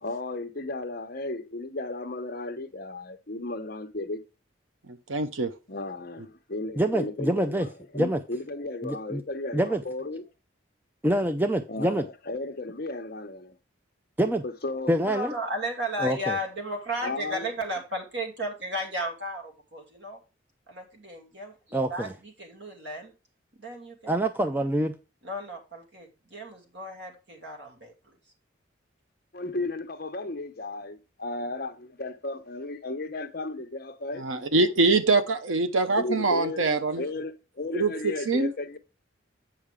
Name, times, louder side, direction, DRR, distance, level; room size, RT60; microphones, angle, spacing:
voice 1, 0.0-4.2 5.7-10.2 11.7-13.6 14.4-14.9 17.0-17.5 29.3-35.0 35.9-38.8, left 2 dB, 50° left, 0.9 m, -35 dB
voice 2, 5.1-5.5 34.2-37.0 37.7-37.9 38.3-38.5, right 3 dB, 85° right, 0.9 m, -23 dB
voice 3, 6.8-7.7 7.9-8.2 8.8-9.2 9.5-9.8 11.0-12.0 14.2-14.4 14.9-15.3 16.0-16.4 21.7-22.1 24.1-24.9, right 1 dB, 10° right, 0.4 m, -25 dB
voice 4, 15.0-20.2 20.7-23.1 23.6-24.1 25.2-27.9, equal, 60° right, 2.5 m, -34 dB
8.6 x 5.7 x 3.6 m
head